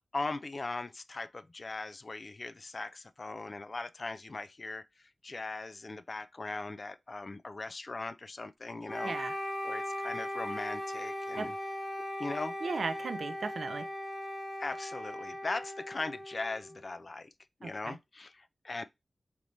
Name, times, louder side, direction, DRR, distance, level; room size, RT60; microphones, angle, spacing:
voice 1, 0.0-9.2 9.6-11.5 12.2-12.5 14.6-17.3 17.6-18.8, left 3 dB, 50° left, 0.4 m, -39 dB
Wind instrument woodwind instrument, 8.9-16.9, left 1 dB, 5° left, 0.8 m, -38 dB
voice 2, 9.0-9.3 11.4-11.5 12.6-13.9 17.6-18.0, right 4 dB, 85° right, 0.4 m, -36 dB
3.4 x 3.0 x 2.5 m
cardioid pair, 45°, 0 cm